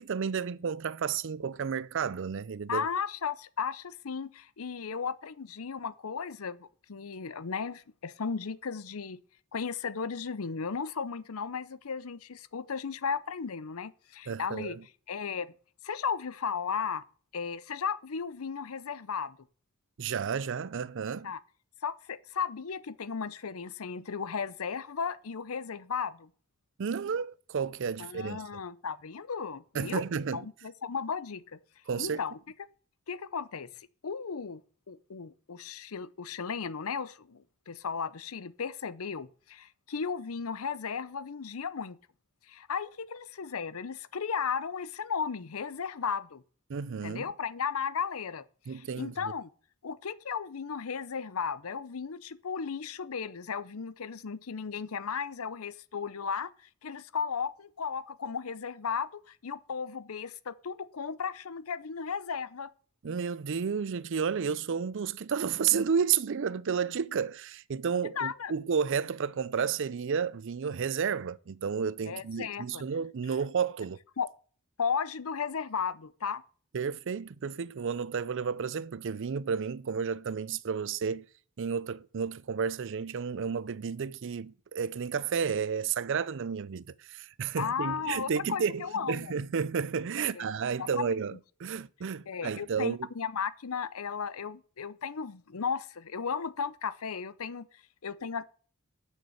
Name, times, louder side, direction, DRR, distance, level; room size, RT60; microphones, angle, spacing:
voice 1, 0.0-2.9 14.3-14.8 20.0-21.3 26.8-28.4 29.7-30.5 31.9-32.2 46.7-47.3 48.7-49.3 63.0-74.0 76.7-81.3 81.6-91.3 91.6-93.1, right 6 dB, 60° right, 0.5 m, -32 dB
voice 2, 2.7-9.2 9.5-14.8 15.1-15.5 15.8-17.0 17.3-19.4 21.2-21.4 21.8-26.3 28.0-30.0 30.3-31.6 32.0-32.4 33.1-33.7 34.0-34.6 34.9-42.0 42.5-46.4 47.0-49.5 49.8-56.5 56.8-62.7 68.0-68.5 72.0-72.8 74.2-74.3 74.8-76.4 87.6-89.3 90.2-90.5 90.8-90.9 92.3-97.7 98.0-98.5, left 6 dB, 75° left, 0.7 m, -35 dB
9.6 x 6.5 x 7.9 m
head